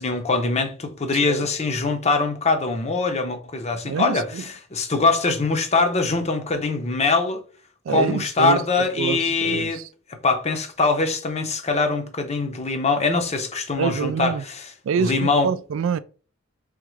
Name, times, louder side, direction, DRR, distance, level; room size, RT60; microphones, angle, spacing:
voice 1, 0.0-4.3 4.7-7.4 7.9-9.8 10.2-14.6 15.0-15.5, left 3 dB, 35° left, 0.7 m, -22 dB
voice 2, 3.8-4.4 7.8-9.9 13.8-14.4 14.8-16.0, right 7 dB, 75° right, 0.3 m, -26 dB
3.6 x 3.5 x 3.1 m
head